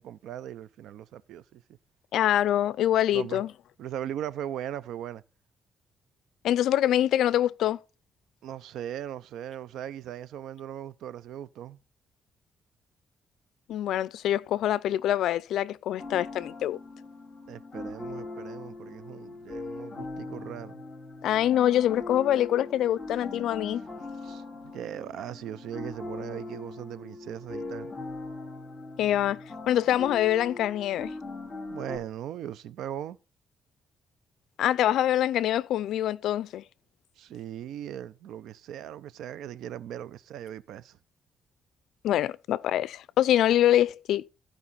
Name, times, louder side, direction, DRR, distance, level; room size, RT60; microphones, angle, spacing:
voice 1, 0.0-1.6 3.1-3.4 3.8-5.2 8.4-11.8 17.5-20.8 24.2-27.9 31.7-33.2 37.2-41.0, right 10 dB, 85° right, 0.5 m, -39 dB
voice 2, 2.1-3.5 6.4-7.8 13.7-16.8 21.2-23.8 29.0-29.4 29.7-31.1 34.6-36.6 42.0-44.3, left 12 dB, 80° left, 0.4 m, -25 dB
sound 1, 16.0-32.0, left 2 dB, 25° left, 3.7 m, -40 dB
14.5 x 5.0 x 4.1 m
cardioid pair, 130°, 0 cm